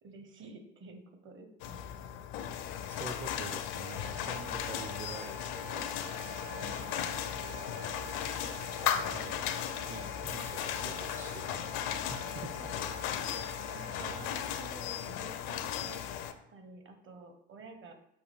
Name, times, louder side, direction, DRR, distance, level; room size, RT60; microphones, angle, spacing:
voice 1, 0.0-2.0 6.5-7.2 8.8-9.3 9.9-10.2 12.3-13.2 13.7-16.0 16.5-17.9, right 3 dB, 40° right, 5 dB, 0.9 m, -51 dB
sound 1, 1.6-16.3, left 9 dB, 65° left, 0.5 m, -36 dB
voice 2, 2.9-5.9 8.8-9.4 9.9-12.5 14.0-14.2, right 4 dB, 25° right, 5 dB, 0.5 m, -46 dB
Wind instrument woodwind instrument, 3.9-14.7, right 3 dB, 85° right, 1.0 m, -49 dB
6.0 x 2.4 x 3.3 m, 0.81 s
hypercardioid pair, 65°, 29 cm